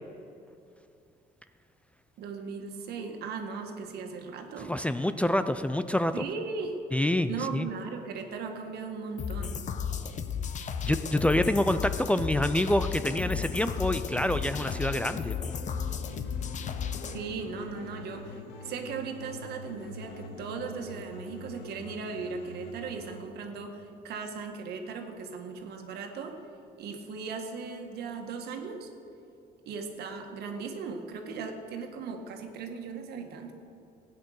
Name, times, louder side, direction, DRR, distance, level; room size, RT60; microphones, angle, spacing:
voice 1, 2.2-4.8 6.1-6.8 7.3-9.6 17.1-26.4 26.8-28.9 29.7-33.5, right 5 dB, 70° right, 4 dB, 1.8 m, -38 dB
voice 2, 4.7-6.2 6.9-7.7 10.8-15.5, left 1 dB, 5° left, 11 dB, 0.4 m, -27 dB
sound 1, 9.2-17.2, left 7 dB, 45° left, 0.9 m, -34 dB
sound 2, 13.0-23.2, left 4 dB, 90° left, 1.6 m, -45 dB
15.5 x 9.4 x 6.5 m, 2.6 s
cardioid pair, 110°, 17 cm